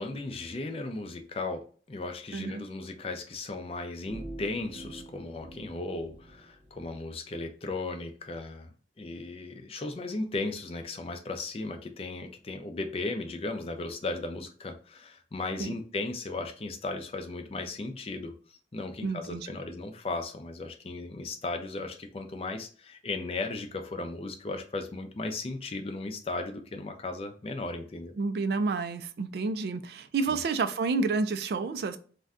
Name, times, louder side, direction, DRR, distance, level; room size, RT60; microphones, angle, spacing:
voice 1, 0.0-28.2 30.2-30.4, left 2 dB, 35° left, 6 dB, 0.4 m, -36 dB
voice 2, 2.3-2.7 15.6-15.7 19.0-19.5 28.2-32.0, right 4 dB, 60° right, 11 dB, 0.3 m, -30 dB
sound 1, 4.1-6.9, right 1 dB, 30° right, 0.7 m, -46 dB
2.5 x 2.2 x 3.4 m, 0.41 s
head